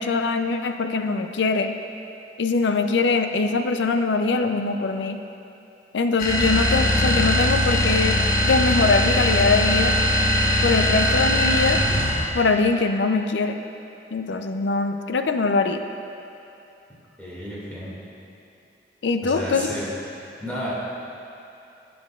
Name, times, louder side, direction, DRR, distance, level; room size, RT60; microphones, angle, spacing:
voice 1, 0.0-1.7 2.4-5.2 5.9-8.2 8.4-9.9 10.6-11.8 12.3-13.6 14.1-15.8 19.0-19.7, left 4 dB, 90° left, 6 dB, 0.5 m, -22 dB
sound 1, 6.2-12.3, left 1 dB, 50° left, 1.2 m, -21 dB
voice 2, 17.2-17.9 19.2-19.9 20.4-20.7, equal, 10° left, -8 dB, 2.1 m, -32 dB
17.0 x 6.2 x 2.4 m, 2.8 s
head